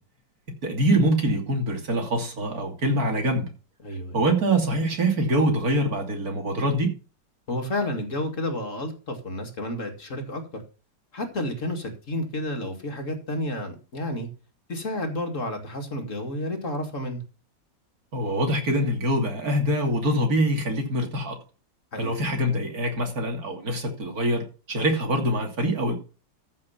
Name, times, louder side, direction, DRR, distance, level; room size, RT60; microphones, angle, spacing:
voice 1, 0.6-3.5 4.1-6.9 18.1-21.4 22.0-26.0, right 1 dB, 55° right, 3.2 m, -24 dB
voice 2, 3.8-4.2 7.5-10.6 11.1-14.3 14.7-17.2 21.9-22.2, left 1 dB, 45° left, 2.3 m, -31 dB
14.0 x 5.8 x 5.7 m
omnidirectional pair, 1.9 m